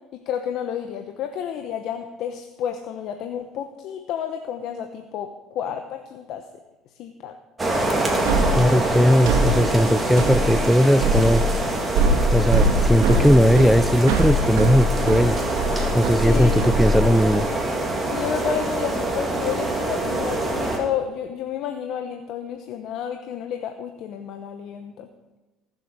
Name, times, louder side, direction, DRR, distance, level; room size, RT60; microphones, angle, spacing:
voice 1, 0.1-6.4 7.0-7.3 16.1-16.6 18.0-25.1, left 9 dB, 65° left, 6 dB, 1.0 m, -31 dB
sound 1, 7.6-20.8, right 2 dB, 20° right, 3.1 m, -25 dB
sound 2, 8.3-17.4, right 1 dB, 85° right, 2.5 m, -23 dB
voice 2, 8.6-11.4 12.3-15.4 15.9-17.4, equal, ahead, 10 dB, 0.5 m, -18 dB
18.0 x 7.7 x 6.7 m, 1.1 s
supercardioid pair, 100°, 0 cm